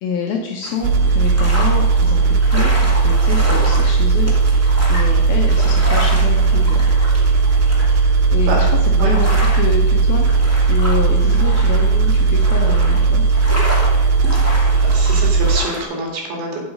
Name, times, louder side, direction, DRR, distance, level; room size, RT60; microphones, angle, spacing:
voice 1, 0.0-4.3 4.9-6.9 8.3-13.2, left 5 dB, 75° left, 1 dB, 2.3 m, -27 dB
sound 1, 0.6-15.8, equal, 10° right, 0.6 m, -30 dB
sound 2, 0.8-15.6, right 4 dB, 90° right, 2.9 m, -15 dB
voice 2, 7.8-8.2 8.5-8.6 9.0-9.2 14.3-14.6 14.9-16.6, right 2 dB, 65° right, -1 dB, 3.9 m, -26 dB
8.8 x 8.2 x 5.2 m, 1.0 s
omnidirectional pair, 5.1 m